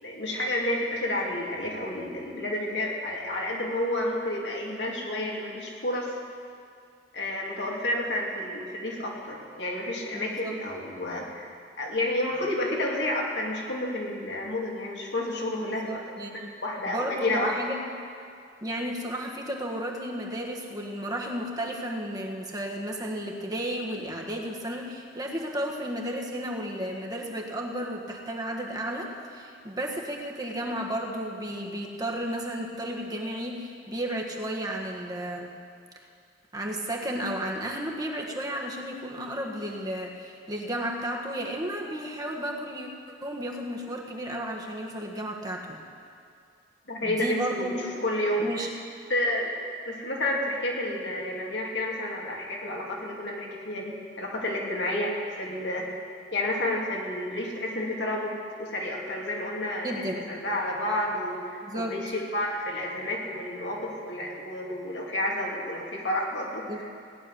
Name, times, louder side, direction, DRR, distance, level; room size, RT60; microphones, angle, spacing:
voice 1, 0.0-6.1 7.1-16.0 16.3-17.6 46.9-48.7 49.1-49.5 49.9-55.9 56.3-66.9, left 1 dB, 70° left, -2 dB, 2.8 m, -30 dB
voice 2, 10.1-10.5 15.6-16.5 16.9-17.9 18.6-35.5 36.5-42.9 43.2-45.8 47.0-47.7 48.4-48.7 59.8-60.4 61.6-61.9 66.7-66.9, right 1 dB, 20° right, -1 dB, 1.6 m, -33 dB
17.5 x 7.2 x 9.9 m, 2.3 s
head